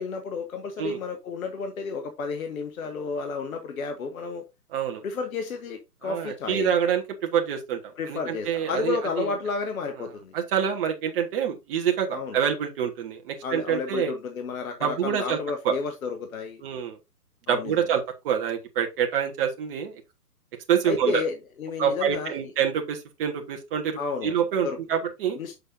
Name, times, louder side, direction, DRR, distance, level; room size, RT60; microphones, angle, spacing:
voice 1, 0.0-4.5 5.0-6.7 8.0-10.3 12.1-12.4 13.4-16.6 17.5-17.7 20.8-22.3 24.0-24.3 24.6-24.8 25.3-25.5, left 4 dB, 60° left, 1.3 m, -31 dB
voice 2, 4.7-5.0 6.0-7.8 8.1-9.3 10.3-14.1 14.8-15.4 15.6-15.8 16.6-17.0 17.5-20.0 20.7-21.2 21.8-25.4, right 8 dB, 35° right, 1.5 m, -26 dB
6.6 x 6.6 x 2.6 m
figure-of-eight pair, 130°, 47 cm